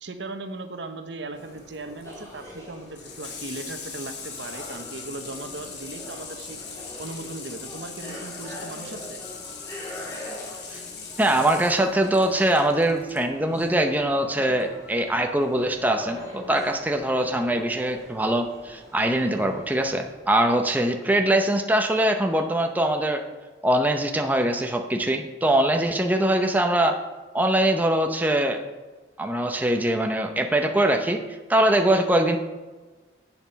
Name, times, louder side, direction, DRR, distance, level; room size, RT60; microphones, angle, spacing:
voice 1, 0.0-6.6 7.0-9.2, right 2 dB, 80° right, 7 dB, 0.9 m, -38 dB
sound 1, 1.3-20.1, left 1 dB, 15° left, 2.6 m, -43 dB
Water tap faucet / Sink (filling or washing), 1.4-13.2 14.5-14.6, left 5 dB, 65° left, 1.6 m, -41 dB
voice 2, 11.2-23.2 23.6-27.0 27.3-28.6 29.2-31.2 31.5-32.4, right 1 dB, 10° right, 4 dB, 0.6 m, -22 dB
8.3 x 7.1 x 5.7 m, 1.3 s
head